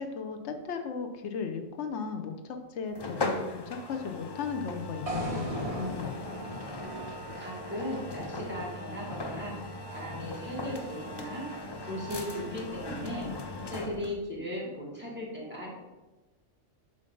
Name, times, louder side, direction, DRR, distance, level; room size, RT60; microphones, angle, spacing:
voice 1, 0.0-6.2, left 5 dB, 65° left, 5 dB, 1.0 m, -36 dB
sound 1, 2.9-14.2, left 2 dB, 45° left, 0.3 m, -39 dB
sound 2, 5.1-9.2, right 1 dB, 30° right, 1.0 m, -38 dB
voice 2, 7.4-11.5 11.8-13.3 13.6-15.7, equal, 10° right, -6 dB, 2.1 m, -37 dB
7.6 x 5.1 x 3.8 m, 1.1 s
omnidirectional pair, 1.3 m